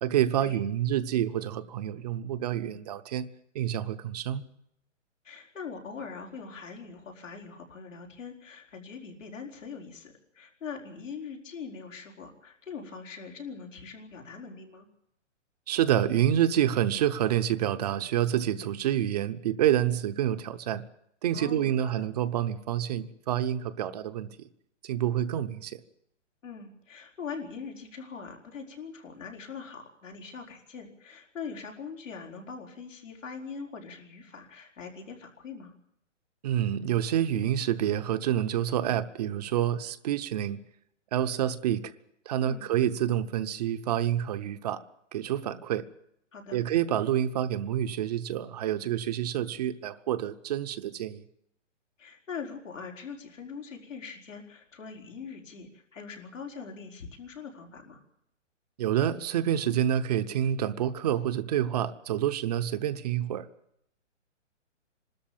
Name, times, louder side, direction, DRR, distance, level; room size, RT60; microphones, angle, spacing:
voice 1, 0.0-3.3 3.5-4.4 15.7-20.8 21.2-24.3 24.8-25.8 36.4-40.6 41.1-41.8 42.3-44.8 45.1-45.8 46.5-51.2 58.8-63.5, right 11 dB, 35° right, 11 dB, 0.8 m, -28 dB
voice 2, 5.2-14.9 21.3-22.1 26.4-35.7 42.4-42.6 46.3-46.6 52.0-58.0, left 5 dB, 90° left, 2 dB, 5.0 m, -42 dB
24.5 x 13.5 x 8.7 m, 0.77 s
hypercardioid pair, 155°, 37 cm